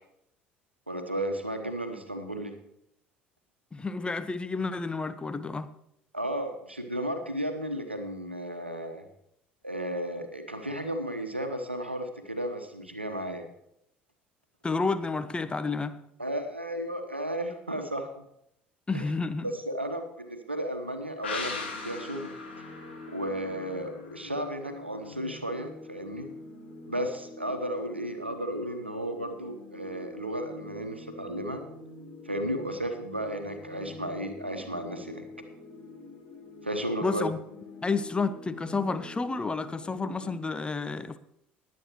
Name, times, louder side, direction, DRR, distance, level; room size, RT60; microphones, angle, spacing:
voice 1, 0.9-2.5 6.1-9.0 9.6-13.5 16.2-18.2 18.9-19.1 19.4-22.3 23.1-26.3 26.8-31.6 32.2-35.2 36.6-37.3, right 1 dB, 85° right, 7 dB, 1.0 m, -34 dB
voice 2, 3.7-5.7 14.6-16.0 18.9-19.5 37.0-37.4 37.8-41.2, left 4 dB, 15° left, 12 dB, 0.7 m, -30 dB
sound 1, 21.2-24.7 25.0-25.1, left 4 dB, 80° left, 2.5 m, -39 dB
sound 2, 21.3-40.3, left 3 dB, 45° left, 3.9 m, -46 dB
21.0 x 8.4 x 3.1 m, 0.78 s
figure-of-eight pair, 60°, 6 cm